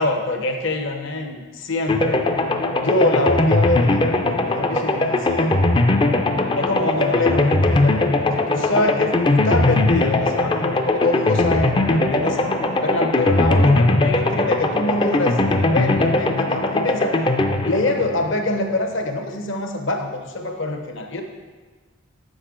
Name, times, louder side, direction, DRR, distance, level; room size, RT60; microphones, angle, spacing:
voice 1, 0.0-2.2 2.8-5.5 6.6-17.2 17.6-21.2, left 2 dB, 60° left, 4 dB, 0.9 m, -25 dB
sound 1, 1.9-18.8, left 2 dB, 20° left, 0.4 m, -20 dB
8.0 x 6.4 x 3.8 m, 1.4 s
head